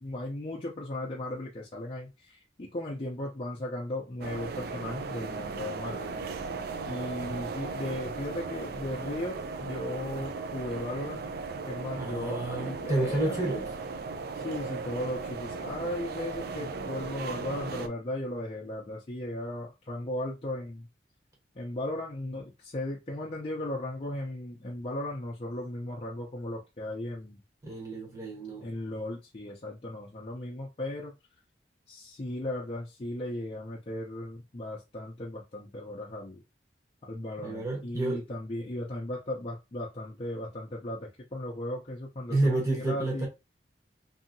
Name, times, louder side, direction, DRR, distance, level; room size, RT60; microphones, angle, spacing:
voice 1, 0.0-6.1 6.8-11.3 11.7-13.7 14.3-20.9 21.5-27.4 28.6-31.1 31.9-36.4 37.1-43.3, left 1 dB, 35° left, 0.5 m, -36 dB
sound 1, 4.2-17.9, right 4 dB, 60° right, 0.4 m, -37 dB
voice 2, 12.0-13.6 27.6-28.7 37.4-38.2 42.3-43.3, right 2 dB, 20° right, 1.1 m, -30 dB
2.7 x 2.7 x 2.6 m
head